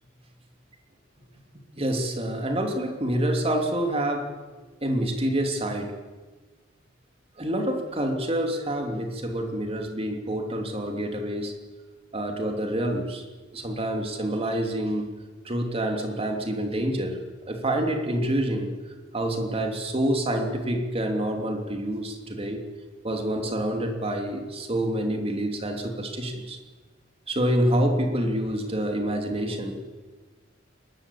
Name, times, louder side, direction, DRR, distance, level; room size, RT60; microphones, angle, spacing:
voice 1, 1.8-4.4 4.8-6.0 7.4-11.6 12.1-13.2 13.5-15.1 15.4-18.8 19.1-22.6 23.0-26.6 27.3-29.8, right 1 dB, 30° right, 4 dB, 3.0 m, -27 dB
23.5 x 21.0 x 8.5 m, 1.3 s
head